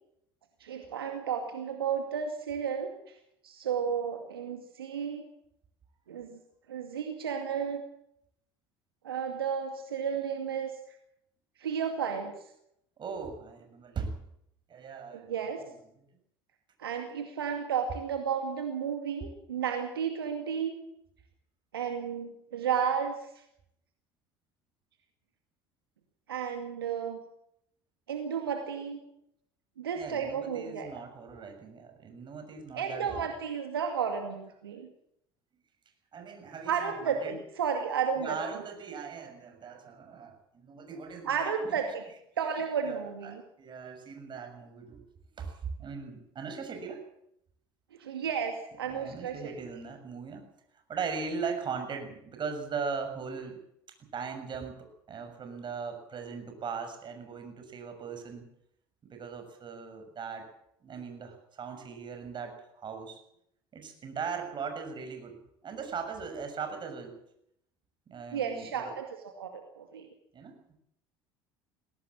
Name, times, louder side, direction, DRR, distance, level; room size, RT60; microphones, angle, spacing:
voice 1, 0.6-3.1 3.4-5.2 6.1-6.4 6.7-7.8 9.0-10.7 11.6-12.3 15.1-15.6 16.8-20.7 21.7-23.3 26.3-27.2 28.1-29.0 29.8-30.9 32.7-34.9 36.7-38.6 41.2-42.0 42.4-43.4 48.0-49.5 68.3-70.1, right 7 dB, 85° right, 5 dB, 2.2 m, -33 dB
voice 2, 13.0-14.2 14.7-15.5 30.0-33.3 36.1-37.3 38.2-41.7 42.8-45.0 45.3-47.0 48.2-48.3 48.9-50.4 50.9-53.6 54.1-58.5 59.0-60.5 60.8-63.2 63.7-67.2 68.1-68.9 70.3-70.7, right 5 dB, 40° right, 5 dB, 6.9 m, -39 dB
21.5 x 17.0 x 7.5 m, 0.75 s
hypercardioid pair, 65°, 12 cm